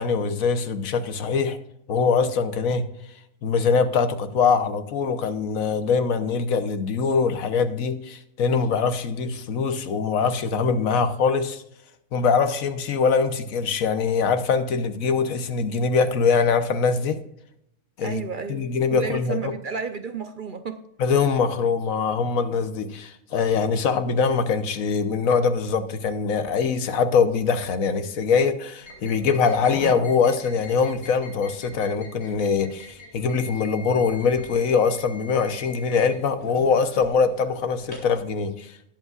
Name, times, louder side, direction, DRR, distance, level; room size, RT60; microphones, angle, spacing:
voice 1, 0.0-1.6 1.9-2.8 3.4-11.6 12.1-17.2 18.0-18.2 18.5-19.5 21.0-38.7, left 5 dB, 85° left, 1.3 m, -23 dB
voice 2, 18.0-18.6 18.9-20.8, right 5 dB, 50° right, 0.7 m, -31 dB
sound 1, 28.8-38.1, equal, 50° left, 3.1 m, -42 dB
19.0 x 8.1 x 2.4 m
omnidirectional pair, 1.4 m